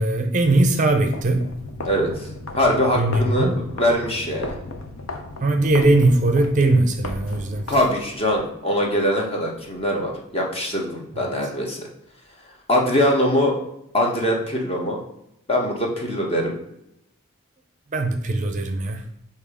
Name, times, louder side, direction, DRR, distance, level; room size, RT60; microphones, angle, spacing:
voice 1, 0.0-1.5 2.9-3.6 5.4-7.6 11.1-11.3 17.9-19.0, right 2 dB, 35° right, 6 dB, 0.5 m, -20 dB
sound 1, 1.0-8.4, left 2 dB, 80° left, 0.8 m, -35 dB
voice 2, 1.9-2.3 2.6-4.5 7.7-11.9 12.7-13.6 13.9-15.0 15.5-16.5, equal, 30° left, 0 dB, 1.1 m, -22 dB
7.0 x 2.8 x 4.9 m, 0.79 s
head